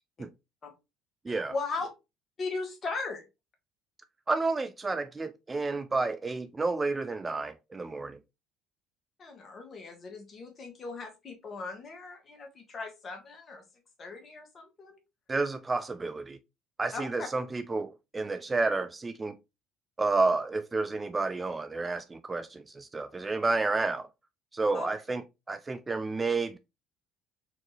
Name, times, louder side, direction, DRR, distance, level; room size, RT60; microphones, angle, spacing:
voice 1, 1.3-1.9 2.4-3.2 9.2-13.6 14.0-15.0 16.9-17.3 24.7-24.9, left 3 dB, 35° left, 1.5 m, -38 dB
voice 2, 4.3-8.2 15.3-16.4 16.8-19.4 20.0-24.1 24.5-26.6, right 3 dB, 20° right, 0.3 m, -30 dB
4.2 x 2.9 x 3.2 m
cardioid pair, 105°, 0 cm